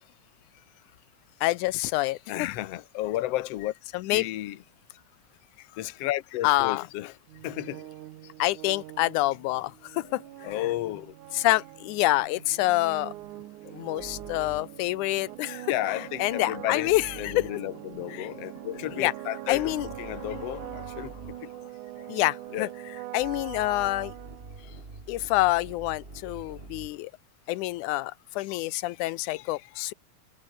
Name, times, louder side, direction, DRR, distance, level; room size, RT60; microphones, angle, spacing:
voice 1, 1.4-2.2 3.9-4.3 6.4-6.8 8.4-10.2 11.3-13.1 13.7-15.7 16.2-17.5 18.1-18.3 19.0-19.1 19.5-19.9 22.1-22.7 23.1-24.1 25.1-27.1 27.5-29.9, left 18 dB, 90° left, 2.1 m, -27 dB
voice 2, 2.3-3.7 4.1-4.6 5.8-7.1 7.4-7.8 10.0-10.1 10.4-11.1 15.7-21.7 22.0-22.1 22.5-22.7 28.5-28.6, left 15 dB, 65° left, 1.9 m, -33 dB
sound 1, 7.3-24.9, right 15 dB, 80° right, 2.4 m, -43 dB
sound 2, 12.1-14.8 16.9-17.7 18.5-21.5 23.2-27.1, right 3 dB, 20° right, 2.7 m, -47 dB
omnidirectional pair, 3.5 m